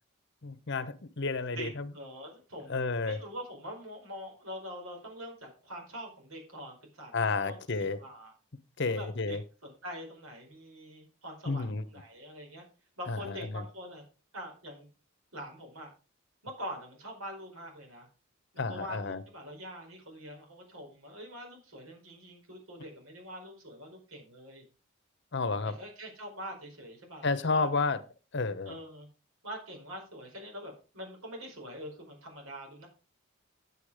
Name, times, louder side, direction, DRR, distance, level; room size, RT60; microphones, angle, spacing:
voice 1, 0.4-1.8 2.7-3.2 7.1-8.0 8.8-9.4 11.5-11.8 13.1-13.2 13.5-13.6 18.6-19.2 25.3-25.7 27.2-28.0 28.3-28.8, left 3 dB, 55° left, 1.0 m, -31 dB
voice 2, 1.5-2.7 3.0-8.3 8.8-12.6 13.0-14.0 14.3-14.9 15.3-15.9 16.4-18.1 18.5-24.6 25.6-27.7 28.6-29.1 29.4-32.9, equal, 85° right, 4.9 m, -44 dB
9.3 x 8.4 x 4.9 m
head